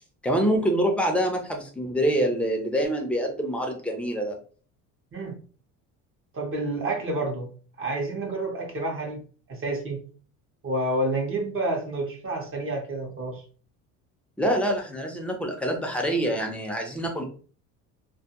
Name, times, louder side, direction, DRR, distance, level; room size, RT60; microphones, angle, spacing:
voice 1, 0.2-4.4 14.4-17.2, right 1 dB, 5° left, 2 dB, 0.6 m, -25 dB
voice 2, 6.3-7.5 7.8-9.2 9.5-10.0 10.6-13.4, right 2 dB, 35° right, 0 dB, 0.8 m, -29 dB
2.2 x 2.1 x 2.8 m, 0.41 s
supercardioid pair, 100°, 38 cm